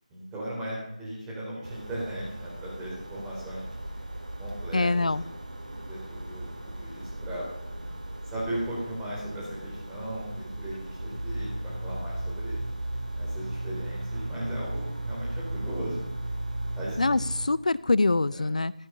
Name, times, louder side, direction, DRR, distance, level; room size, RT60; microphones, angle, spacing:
voice 1, 0.1-3.7 4.4-5.3 5.5-7.5 8.2-12.6 13.2-16.1 16.8-17.3 18.3-18.5, right 1 dB, 10° right, -5 dB, 4.2 m, -37 dB
sound 1, 1.6-17.5, right 1 dB, 85° right, 2.4 m, -36 dB
voice 2, 4.7-5.2 17.0-18.7, left 3 dB, 70° left, 19 dB, 0.4 m, -24 dB
14.0 x 11.5 x 5.3 m, 0.86 s
figure-of-eight pair, 160°, 4 cm